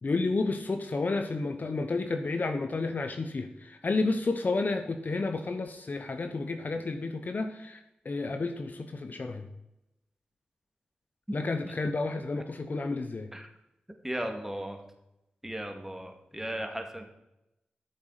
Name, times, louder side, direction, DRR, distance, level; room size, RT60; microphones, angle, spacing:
voice 1, 0.0-9.5 11.3-13.3, left 3 dB, 55° left, 7 dB, 1.0 m, -31 dB
voice 2, 14.0-14.8 15.4-17.1, right 1 dB, 10° right, 4 dB, 2.3 m, -36 dB
13.0 x 7.2 x 5.0 m, 0.88 s
cardioid pair, 50°, 3 cm